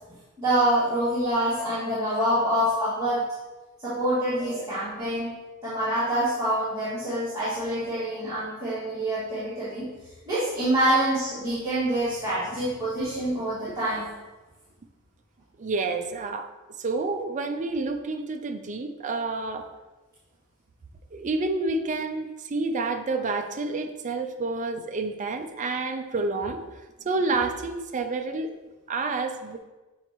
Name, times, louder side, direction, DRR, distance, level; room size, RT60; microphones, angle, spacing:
voice 1, 0.4-3.2 3.8-5.3 5.6-9.9 10.2-14.1, right 1 dB, 15° right, -12 dB, 2.0 m, -26 dB
voice 2, 15.6-16.5 16.8-19.7 21.1-28.5 28.9-29.6, right 3 dB, 35° right, 5 dB, 0.5 m, -29 dB
7.5 x 4.3 x 3.1 m, 1.1 s
head